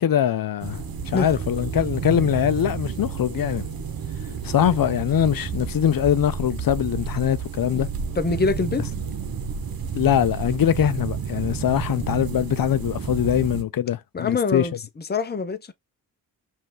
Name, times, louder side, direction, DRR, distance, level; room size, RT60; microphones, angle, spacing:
voice 1, 0.0-3.7 4.4-7.9 9.9-14.7, left 10 dB, 50° left, 0.6 m, -22 dB
sound 1, 0.6-13.6, right 7 dB, 50° right, 1.1 m, -31 dB
voice 2, 8.2-8.9 14.1-14.7 15.1-15.7, left 4 dB, 20° left, 0.8 m, -24 dB
5.1 x 2.7 x 3.8 m
supercardioid pair, 45°, 45 cm